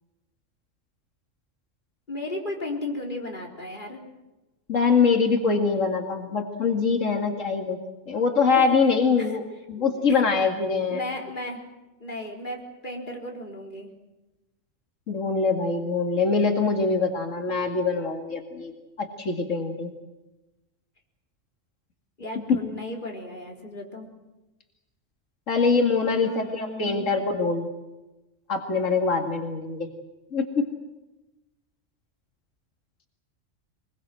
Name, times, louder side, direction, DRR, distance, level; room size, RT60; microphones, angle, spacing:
voice 1, 2.1-4.0 8.6-8.7 9.2-9.3 9.8-10.2 10.9-11.6 12.0-13.9 22.2-24.1 26.0-27.1, left 1 dB, 40° left, 0 dB, 4.1 m, -35 dB
voice 2, 4.7-7.8 8.1-9.4 9.7-11.0 15.1-18.7 19.0-19.9 25.5-27.7 28.5-29.9 30.3-30.7, left 4 dB, 85° left, 4 dB, 2.5 m, -23 dB
24.5 x 21.5 x 7.7 m, 1.0 s
omnidirectional pair, 1.3 m